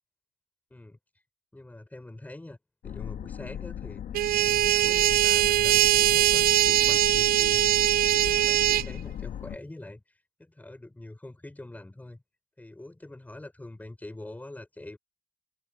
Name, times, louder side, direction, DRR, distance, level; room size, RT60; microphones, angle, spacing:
voice 1, 1.5-2.6 2.8-4.0 4.4-7.7 8.1-10.0 10.4-12.2 12.6-15.0, left 1 dB, 10° left, 5.3 m, -44 dB
sound 1, 2.8-9.6, left 10 dB, 55° left, 2.7 m, -38 dB
sound 2, 4.1-8.9, right 15 dB, 60° right, 0.5 m, -22 dB
open air
cardioid pair, 110°, 17 cm